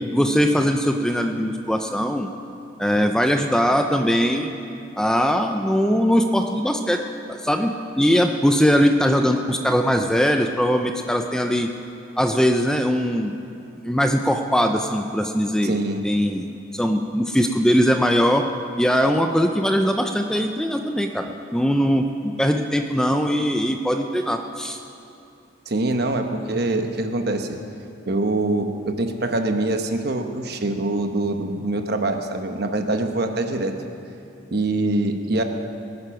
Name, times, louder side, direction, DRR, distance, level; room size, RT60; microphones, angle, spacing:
voice 1, 0.1-2.3 2.8-4.5 5.0-7.0 7.3-11.7 12.2-13.3 13.8-15.8 16.0-18.5 18.8-24.8, equal, 5° left, 4 dB, 0.5 m, -21 dB
voice 2, 15.6-16.0 25.7-27.6 28.1-33.7 34.5-35.4, right 2 dB, 50° right, 5 dB, 1.1 m, -24 dB
21.5 x 9.4 x 5.9 m, 2.7 s
head